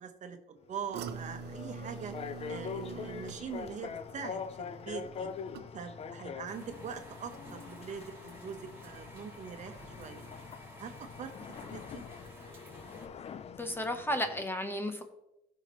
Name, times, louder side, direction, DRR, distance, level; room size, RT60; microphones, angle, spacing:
voice 1, 0.0-2.1 2.5-5.3 5.7-10.2 10.8-12.0, right 6 dB, 45° right, 6 dB, 1.1 m, -43 dB
sound 1, 0.6-14.5, left 6 dB, 35° left, 0.5 m, -44 dB
sound 2, 0.9-6.1 6.5-6.9 7.3-7.4, right 6 dB, 75° right, 0.7 m, -45 dB
sound 3, 6.5-13.1, right 1 dB, 15° right, 3.6 m, -53 dB
voice 2, 13.6-15.1, left 1 dB, 15° left, 7 dB, 0.9 m, -33 dB
15.5 x 5.9 x 3.1 m, 0.91 s
cardioid pair, 110°, 17 cm